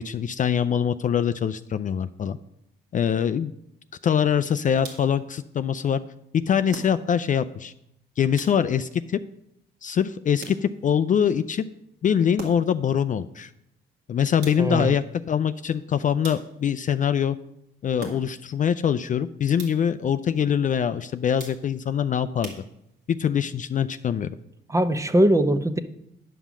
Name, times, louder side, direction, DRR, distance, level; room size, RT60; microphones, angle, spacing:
voice 1, 0.0-2.4 2.9-3.5 4.0-6.0 6.3-7.7 8.2-9.2 9.8-11.7 12.0-13.5 14.1-17.4 17.8-22.5 23.1-24.3, left 8 dB, 40° left, 12 dB, 0.4 m, -23 dB
sound 1, 4.8-5.3 6.7-7.4 8.4-9.0 10.4-11.0 12.4-12.9 14.4-14.9 16.2-16.8 18.0-18.6 19.6-20.0 21.4-21.9 22.4-23.2, right 3 dB, 75° right, 2.1 m, -42 dB
voice 2, 14.6-15.0 24.7-25.8, right 1 dB, 15° right, 11 dB, 0.7 m, -21 dB
10.0 x 5.6 x 6.1 m, 0.80 s
cardioid pair, 90°, 20 cm